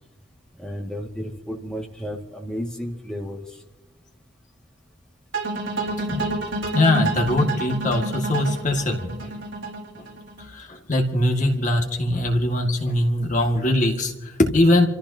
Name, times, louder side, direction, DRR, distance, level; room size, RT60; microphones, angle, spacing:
voice 1, 0.6-3.6, equal, 5° left, -1 dB, 1.9 m, -33 dB
sound 1, 5.3-10.4, right 2 dB, 75° right, 4.7 m, -28 dB
voice 2, 6.7-9.3 10.4-14.9, left 1 dB, 40° left, 2 dB, 2.0 m, -21 dB
29.0 x 14.5 x 2.8 m, 1.0 s
head